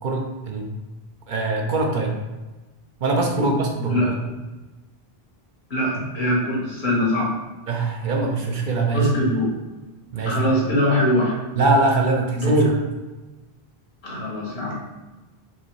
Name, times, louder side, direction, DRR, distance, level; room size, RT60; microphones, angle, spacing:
voice 1, 0.0-0.7 1.3-2.1 3.0-4.3 7.7-9.1 10.1-10.4 11.6-12.6, right 3 dB, 55° right, 1 dB, 0.7 m, -22 dB
voice 2, 5.7-7.3 8.9-9.5 10.3-11.4 12.3-12.7 14.0-14.7, left 1 dB, 85° left, -4 dB, 1.5 m, -22 dB
4.7 x 2.7 x 3.1 m, 1.1 s
omnidirectional pair, 1.0 m